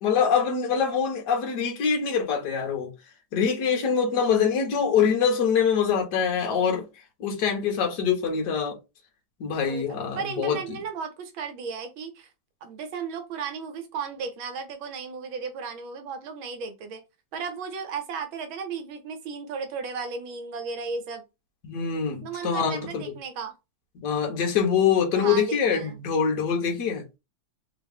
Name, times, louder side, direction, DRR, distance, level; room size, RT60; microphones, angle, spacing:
voice 1, 0.0-2.9 3.3-6.8 7.2-8.8 9.4-10.6 21.6-23.0 24.0-27.0, left 6 dB, 55° left, 1.6 m, -24 dB
voice 2, 4.1-4.8 9.5-12.3 12.6-17.0 17.3-21.2 22.2-23.5 25.1-26.0, right 5 dB, 70° right, 1.5 m, -35 dB
3.8 x 2.9 x 3.5 m
omnidirectional pair, 2.3 m